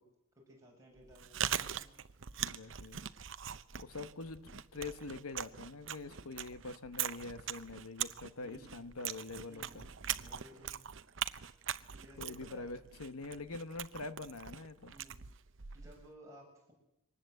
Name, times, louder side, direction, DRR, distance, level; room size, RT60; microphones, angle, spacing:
voice 1, 0.4-1.9 6.0-6.4 8.4-8.7 9.5-9.8 10.2-10.7 11.9-12.7 14.9-15.2 15.7-16.7, equal, 15° right, -2 dB, 7.1 m, -57 dB
Chewing mastication, 1.0-16.1, right 10 dB, 60° right, 0.8 m, -42 dB
voice 2, 2.4-3.0 3.8-9.9 12.2-14.9, left 3 dB, 90° left, 12 dB, 1.3 m, -45 dB
23.5 x 19.5 x 7.9 m, 0.82 s
head